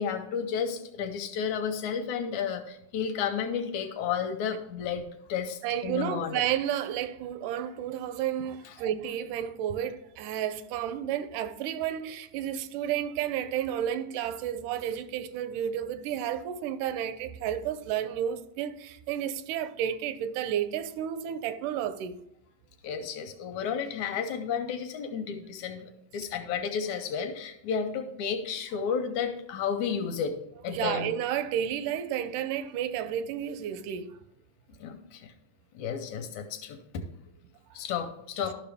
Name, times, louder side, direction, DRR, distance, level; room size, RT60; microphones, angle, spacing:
voice 1, 0.0-6.4 8.7-8.8 22.8-30.3 30.6-31.1 34.8-35.3 35.7-37.1 37.7-38.5, left 7 dB, 75° left, 1.9 m, -32 dB
voice 2, 5.6-22.2 30.7-34.2, right 10 dB, 85° right, 2.1 m, -31 dB
12.5 x 5.9 x 3.4 m
omnidirectional pair, 3.5 m